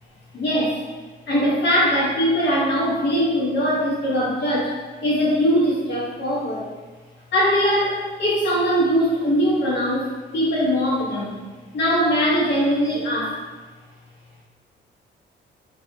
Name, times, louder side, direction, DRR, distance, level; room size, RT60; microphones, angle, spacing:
voice 1, 0.3-0.8 1.3-4.8 5.0-6.7 7.3-11.4 11.7-13.3, equal, 60° left, -7 dB, 1.1 m, -21 dB
2.6 x 2.4 x 2.6 m, 1.4 s
cardioid pair, 90°, 20 cm